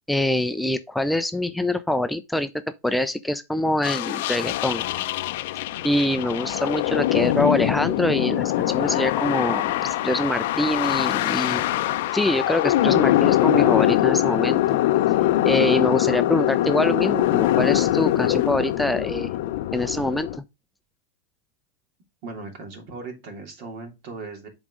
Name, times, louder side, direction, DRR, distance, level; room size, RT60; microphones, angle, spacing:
voice 1, 0.1-2.5 2.8-4.8 5.8-11.7 12.1-14.8 15.4-19.3 19.7-20.4, left 1 dB, 5° left, 0.5 m, -24 dB
sound 1, 3.8-20.4, left 14 dB, 65° left, 0.5 m, -23 dB
voice 2, 22.2-24.5, right 3 dB, 60° right, 2.9 m, -38 dB
7.2 x 4.1 x 4.8 m
hypercardioid pair, 115°, 0 cm